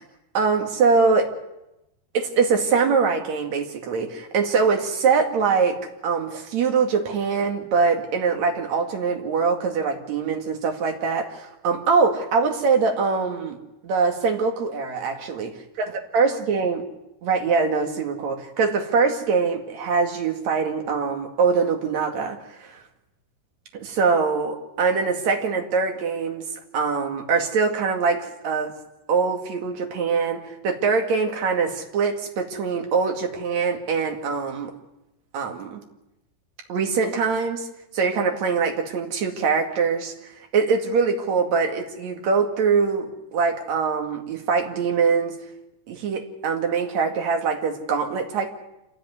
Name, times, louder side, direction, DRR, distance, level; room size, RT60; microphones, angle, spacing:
voice 1, 0.3-1.3 2.1-15.5 15.8-16.9 17.2-22.8 23.7-26.4 26.7-28.7 29.1-34.7 35.3-35.8 36.7-37.7 37.9-45.4 45.9-48.5, right 5 dB, 45° right, 3 dB, 2.8 m, -23 dB
27.5 x 13.5 x 9.6 m, 0.93 s
omnidirectional pair, 5.2 m